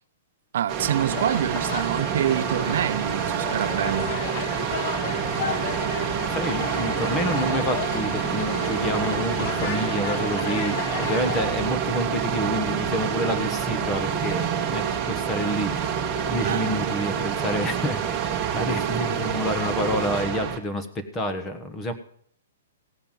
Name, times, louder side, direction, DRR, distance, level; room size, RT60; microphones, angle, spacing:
voice 1, 0.5-4.1 16.4-16.7, right 10 dB, 60° right, 0.5 m, -26 dB
sound 1, 0.7-20.6, right 8 dB, 20° right, 1.5 m, -27 dB
sound 2, 0.9-11.4, left 8 dB, 40° left, 1.2 m, -33 dB
voice 2, 6.3-15.7 16.3-21.9, left 1 dB, 15° left, 1.2 m, -28 dB
16.0 x 5.7 x 9.1 m
hypercardioid pair, 160°, 0 cm